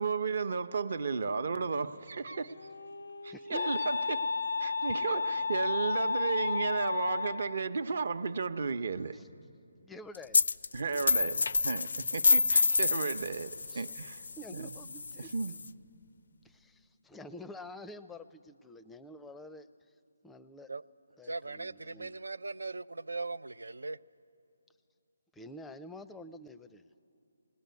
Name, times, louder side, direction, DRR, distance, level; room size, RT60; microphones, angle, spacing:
voice 1, 0.0-2.5 3.2-4.3 4.6-9.2 10.7-14.2 14.5-14.7 15.2-15.5, right 5 dB, 60° right, 0.8 m, -34 dB
Wind instrument woodwind instrument, 2.1-7.6, left 4 dB, 85° left, 0.8 m, -33 dB
voice 2, 3.3-3.8 9.1-9.3 9.9-10.4 13.7-13.9 14.4-15.6 16.4-19.7 20.2-20.7 21.2-22.2 25.3-26.8, left 1 dB, 5° left, 0.5 m, -48 dB
sound 1, 10.3-10.7 10.9-15.7, left 4 dB, 65° left, 0.5 m, -28 dB
voice 3, 21.2-24.0, right 3 dB, 85° right, 0.4 m, -39 dB
20.5 x 19.0 x 9.4 m
figure-of-eight pair, 155°, 0 cm